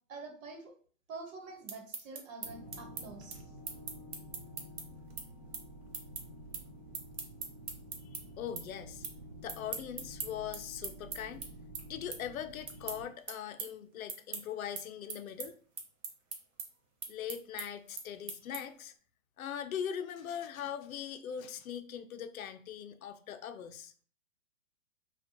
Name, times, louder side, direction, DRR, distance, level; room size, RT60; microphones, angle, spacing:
voice 1, 0.1-0.7 1.1-3.4, right 3 dB, 70° right, 1.3 m, -46 dB
sound 1, 1.5-8.2 8.6-9.2 9.5-18.9, right 5 dB, 50° right, 0.9 m, -42 dB
sound 2, 2.4-13.1, right 1 dB, ahead, 0.9 m, -50 dB
voice 2, 8.4-9.1 9.4-11.4 11.9-15.6 17.1-18.9 19.4-23.9, left 9 dB, 85° left, 0.6 m, -41 dB
4.4 x 2.4 x 2.9 m
hypercardioid pair, 165°, 41 cm